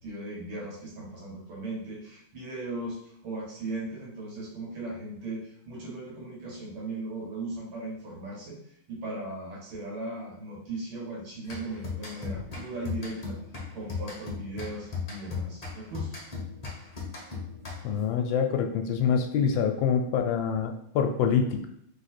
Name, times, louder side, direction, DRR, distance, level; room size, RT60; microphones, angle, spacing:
voice 1, 0.0-13.4 13.7-16.2, right 2 dB, 80° right, -3 dB, 2.3 m, -38 dB
sound 1, 11.4-18.1, left 5 dB, 35° left, 0.6 m, -37 dB
voice 2, 17.8-21.7, left 7 dB, 75° left, 5 dB, 1.2 m, -26 dB
3.7 x 3.2 x 4.3 m, 0.69 s
omnidirectional pair, 2.2 m